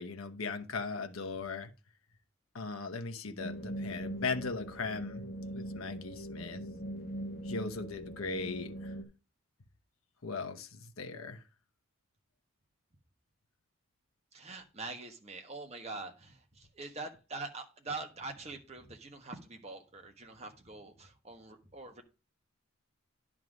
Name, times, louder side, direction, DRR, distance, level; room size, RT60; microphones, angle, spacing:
voice 1, 0.0-1.7 2.5-5.3 5.5-6.6 7.4-8.9 10.2-11.4, left 4 dB, 85° left, 1.0 m, -38 dB
sound 1, 3.4-9.0, right 1 dB, 45° left, 1.3 m, -41 dB
voice 2, 14.3-22.0, right 3 dB, 30° right, 1.2 m, -44 dB
10.5 x 3.7 x 6.3 m
head